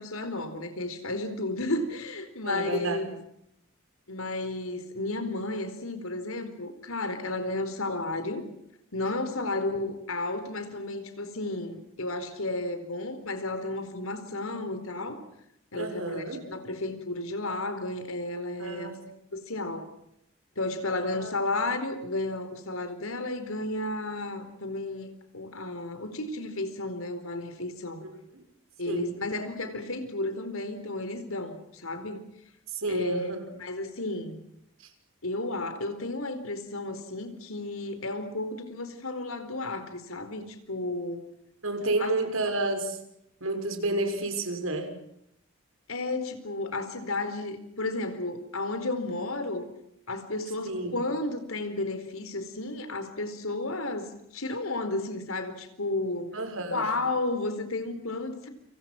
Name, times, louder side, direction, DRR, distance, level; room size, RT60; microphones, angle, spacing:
voice 1, 0.0-3.2 4.1-8.5 8.9-15.2 15.7-18.9 19.3-19.9 20.6-28.0 28.8-32.2 32.9-33.3 33.6-34.4 35.2-41.3 42.0-42.1 45.9-49.7 50.1-56.4 56.7-58.5, left 2 dB, 85° left, 9 dB, 4.4 m, -33 dB
voice 2, 2.4-3.0 15.7-16.4 18.6-19.0 21.0-21.3 28.0-28.1 28.9-29.1 32.7-33.5 34.8-34.9 41.6-43.0 43.4-44.9 50.6-51.0 56.3-56.9, right 2 dB, 80° right, 6 dB, 6.2 m, -30 dB
30.0 x 26.0 x 6.1 m, 0.76 s
head